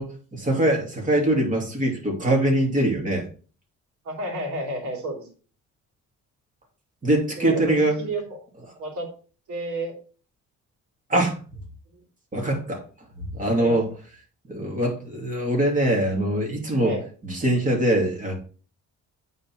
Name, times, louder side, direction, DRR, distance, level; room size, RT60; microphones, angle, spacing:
voice 1, 0.0-3.3 7.0-8.0 11.1-11.4 12.3-12.8 13.1-13.9 14.5-17.0 17.2-18.3, right 1 dB, 25° right, 2.8 m, -23 dB
voice 2, 4.0-5.3 7.4-8.2 8.8-9.1 9.5-9.9 11.9-12.0 13.6-13.8 16.8-17.0, right 1 dB, 85° right, 2.7 m, -31 dB
8.6 x 4.1 x 4.7 m
cardioid pair, 110°, 29 cm